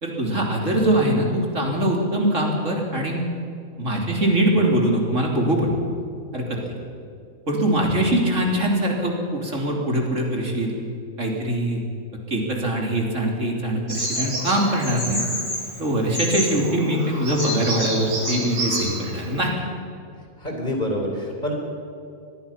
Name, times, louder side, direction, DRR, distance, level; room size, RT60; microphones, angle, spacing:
voice 1, 0.0-3.3 3.8-5.8 6.3-6.6 7.5-10.8 11.2-11.8 12.3-15.2 15.8-19.5, right 1 dB, 60° right, 0 dB, 3.6 m, -22 dB
Bird vocalization bird call bird song, 13.9-19.5, equal, 75° right, 7.6 m, -29 dB
voice 2, 20.4-21.5, equal, 30° left, 1 dB, 4.4 m, -26 dB
24.5 x 20.5 x 5.8 m, 2.5 s
omnidirectional pair, 1.4 m